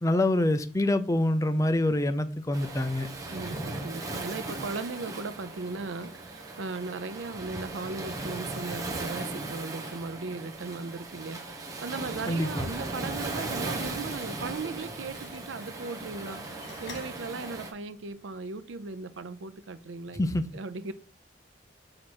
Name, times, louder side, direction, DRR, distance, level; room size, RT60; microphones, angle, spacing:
voice 1, 0.0-3.1 12.3-12.7 20.2-20.5, left 1 dB, 15° left, 0.5 m, -26 dB
Waves surf, 2.5-17.7, right 2 dB, 20° right, 1.0 m, -37 dB
voice 2, 3.3-20.3 20.5-20.9, right 4 dB, 85° right, 0.6 m, -38 dB
Slam, 13.0-17.9, left 3 dB, 70° left, 1.8 m, -51 dB
5.9 x 4.9 x 4.2 m
head